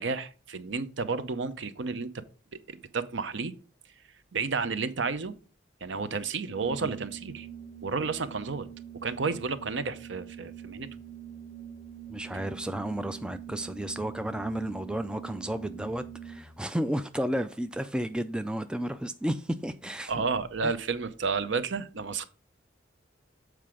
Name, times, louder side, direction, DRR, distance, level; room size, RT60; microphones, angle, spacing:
voice 1, 0.0-2.2 2.7-3.5 4.3-5.3 5.8-7.5 7.8-8.7 8.9-10.9 20.1-22.2, right 4 dB, 70° right, 0.7 m, -31 dB
Organ, 6.4-16.7, right 8 dB, 40° left, 1.4 m, -44 dB
voice 2, 12.1-20.2 20.6-20.7, right 1 dB, 5° right, 0.3 m, -32 dB
7.6 x 4.7 x 4.9 m
head